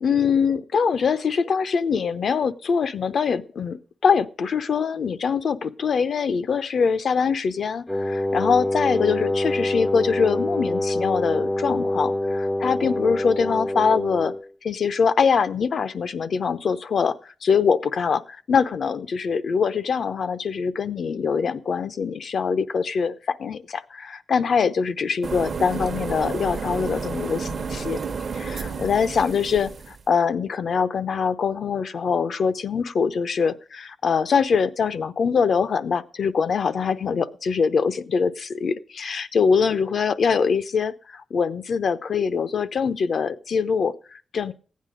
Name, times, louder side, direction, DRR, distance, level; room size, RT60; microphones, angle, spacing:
voice 1, 0.0-14.3 14.6-28.0 28.3-44.5, left 6 dB, 65° left, 11 dB, 0.7 m, -23 dB
Wind instrument woodwind instrument, 7.9-14.5, left 1 dB, 10° left, 0.5 m, -25 dB
sound 1, 25.2-30.0, right 5 dB, 50° right, 0.9 m, -31 dB
15.5 x 9.5 x 5.1 m, 0.40 s
wide cardioid pair, 165°, 0 cm